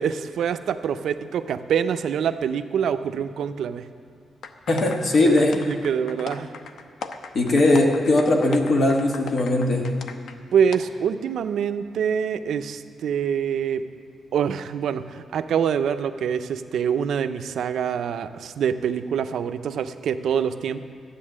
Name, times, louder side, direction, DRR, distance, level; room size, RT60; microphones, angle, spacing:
voice 1, 0.0-3.9 5.2-6.5 10.5-13.9 14.3-20.8, right 7 dB, 75° right, 10 dB, 0.5 m, -25 dB
sound 1, 4.4-10.4 10.7-10.8, left 5 dB, 80° left, 0.7 m, -38 dB
voice 2, 4.7-5.5 7.3-9.9, left 2 dB, 45° left, 1 dB, 1.6 m, -19 dB
13.0 x 8.7 x 7.4 m, 2.4 s
wide cardioid pair, 175°, 0 cm